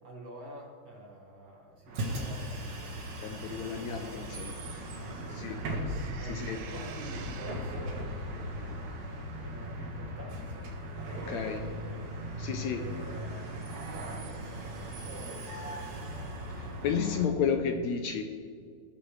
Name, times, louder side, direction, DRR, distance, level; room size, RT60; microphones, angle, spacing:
voice 1, 0.0-2.7 3.6-5.7 6.2-8.9 9.4-10.7 11.4-11.6 11.9-12.1 12.7-15.9, equal, 40° right, -3 dB, 2.3 m, -48 dB
Bus, 1.9-17.3, right 1 dB, 70° right, 2.7 m, -38 dB
voice 2, 3.2-4.6 5.3-5.6 6.3-6.6 11.3-11.7 12.4-12.9 16.5-18.2, left 7 dB, 80° left, 6 dB, 1.8 m, -32 dB
sound 1, 3.9-8.2, right 7 dB, 85° right, 2.4 m, -51 dB
18.5 x 6.7 x 3.2 m, 2.1 s
omnidirectional pair, 3.5 m